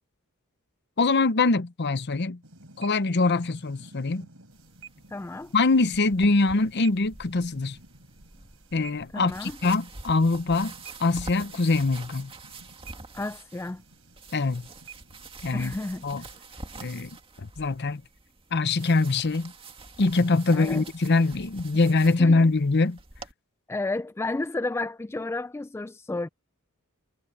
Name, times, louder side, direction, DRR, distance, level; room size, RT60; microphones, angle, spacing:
voice 1, 1.0-2.4 2.8-4.3 5.5-7.8 8.7-10.7 11.0-12.3 14.3-14.7 15.4-15.7 16.0-16.2 16.8-17.1 17.4-18.0 18.5-19.5 20.0-23.0, left 3 dB, 55° left, 0.8 m, -23 dB
sound 1, 2.4-16.4, right 5 dB, 70° right, 7.2 m, -52 dB
sound 2, 4.5-23.3, right 3 dB, 25° right, 2.2 m, -46 dB
voice 2, 5.1-5.5 9.1-9.6 13.1-13.8 15.5-16.0 20.5-20.9 22.2-22.3 23.7-26.3, left 2 dB, 10° left, 0.3 m, -32 dB
head